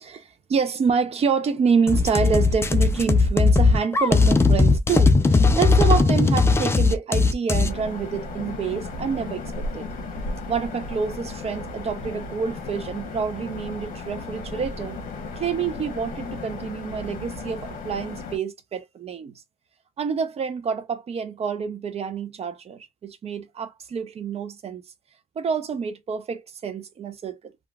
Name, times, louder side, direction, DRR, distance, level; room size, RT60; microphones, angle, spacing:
voice 1, 0.0-9.9 10.5-15.0 15.3-19.3 20.0-24.8 25.4-27.5, right 6 dB, 40° right, 0.6 m, -27 dB
sound 1, 1.9-7.7, left 3 dB, 15° left, 0.4 m, -18 dB
sound 2, 7.7-18.4, left 3 dB, 50° left, 1.1 m, -35 dB
3.1 x 2.3 x 2.3 m
cardioid pair, 110°, 17 cm